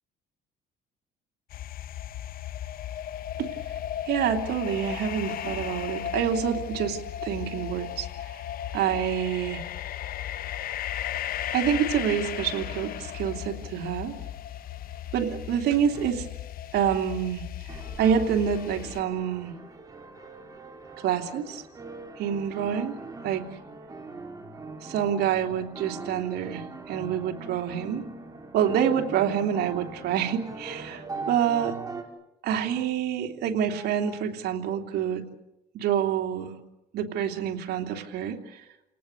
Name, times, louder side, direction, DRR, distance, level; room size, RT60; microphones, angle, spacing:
sound 1, 1.5-19.0, left 11 dB, 60° left, 0.9 m, -35 dB
voice 1, 4.1-8.1 8.7-9.6 11.5-14.1 15.1-16.3 16.7-17.4 17.7-19.5 21.0-21.6 22.2-22.9 23.2-23.4 24.8-28.0 28.5-31.8 32.4-35.2 35.7-36.5 36.9-38.6, right 8 dB, 75° right, 3 dB, 3.1 m, -27 dB
sound 2, 15.9-16.1 17.7-32.0, right 3 dB, 20° right, 3.9 m, -41 dB
30.0 x 18.5 x 8.2 m, 0.91 s
cardioid pair, 110°, 17 cm